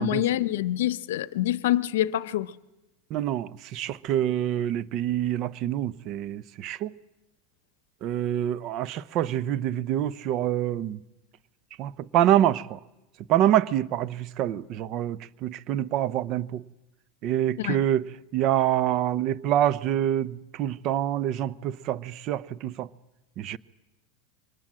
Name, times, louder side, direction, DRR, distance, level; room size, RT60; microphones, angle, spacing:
voice 1, 0.0-2.6 17.6-17.8, left 13 dB, 80° left, 0.7 m, -26 dB
voice 2, 3.1-6.9 8.0-11.0 11.8-12.8 13.3-16.6 17.2-18.0 18.3-22.9 23.4-23.6, right 11 dB, 50° right, 0.7 m, -26 dB
24.0 x 19.5 x 7.6 m
hypercardioid pair, 105°, 0 cm